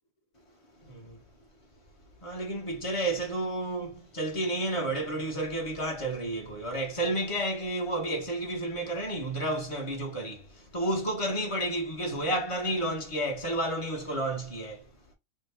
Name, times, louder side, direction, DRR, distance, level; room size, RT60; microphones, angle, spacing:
voice 1, 0.8-1.2 2.2-14.8, right 1 dB, 25° left, 0.8 m, -31 dB
3.7 x 2.2 x 3.3 m
omnidirectional pair, 1.7 m